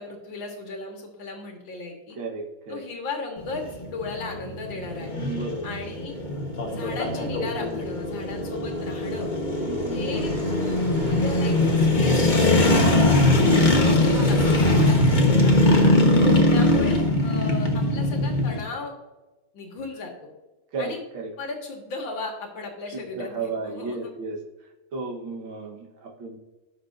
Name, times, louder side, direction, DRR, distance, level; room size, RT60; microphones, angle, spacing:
voice 1, 0.0-2.2 2.7-5.1 5.6-6.2 6.7-9.3 9.9-15.9 16.5-18.9 19.5-20.3 20.8-21.0 21.4-24.1, left 3 dB, 80° left, 1 dB, 2.4 m, -36 dB
voice 2, 2.2-2.8 5.2-5.7 9.7-10.1 16.0-16.8 20.7-21.3 22.9-24.4 24.9-26.4, right 4 dB, 85° right, 0 dB, 2.1 m, -33 dB
sound 1, 3.4-18.6, left 2 dB, 30° left, 1.2 m, -21 dB
Fixed-wing aircraft airplane, 10.1-15.3, right 1 dB, 65° right, 3.3 m, -40 dB
18.0 x 6.2 x 2.6 m, 1.1 s
omnidirectional pair, 2.1 m